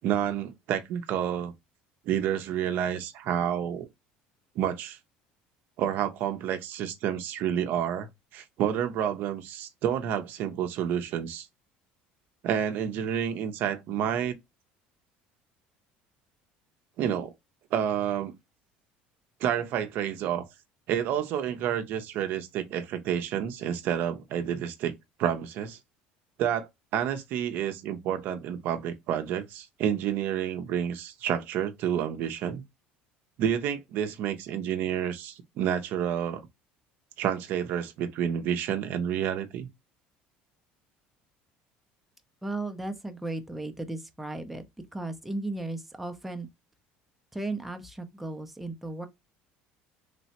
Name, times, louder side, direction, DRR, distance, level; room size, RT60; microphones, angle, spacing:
voice 1, 0.0-1.5 2.1-3.9 4.6-5.0 5.8-11.5 12.4-14.4 17.0-17.3 17.7-18.3 19.4-20.5 20.9-24.9 25.2-25.8 26.4-32.6 33.4-36.5 37.2-39.7, right 9 dB, 65° right, 0.5 m, -29 dB
voice 2, 42.4-44.6 44.9-46.5 47.3-49.1, right 2 dB, 5° right, 0.5 m, -35 dB
3.2 x 2.0 x 2.8 m
supercardioid pair, 110°, 4 cm